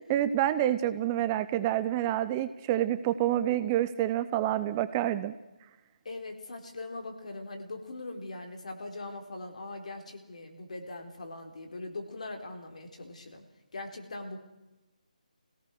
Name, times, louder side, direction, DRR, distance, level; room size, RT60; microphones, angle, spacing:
voice 1, 0.0-5.3, right 12 dB, 20° right, 13 dB, 0.6 m, -28 dB
voice 2, 6.0-13.4 13.7-14.4, left 2 dB, 55° left, 4 dB, 3.8 m, -41 dB
24.5 x 17.5 x 6.4 m, 1.0 s
figure-of-eight pair, 150°, 4 cm